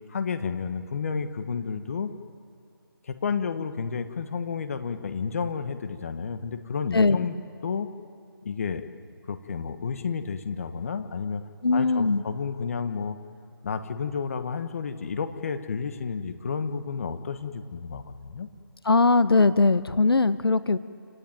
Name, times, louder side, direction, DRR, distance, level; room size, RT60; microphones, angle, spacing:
voice 1, 0.1-2.1 3.0-7.4 7.6-7.9 8.4-8.8 9.3-11.4 11.7-13.2 13.6-18.5, left 5 dB, 35° left, 9 dB, 1.4 m, -31 dB
voice 2, 6.9-7.3 11.6-12.2 18.8-20.8, left 3 dB, 75° left, 14 dB, 1.1 m, -20 dB
28.5 x 17.0 x 9.2 m, 2.4 s
figure-of-eight pair, 165°, 12 cm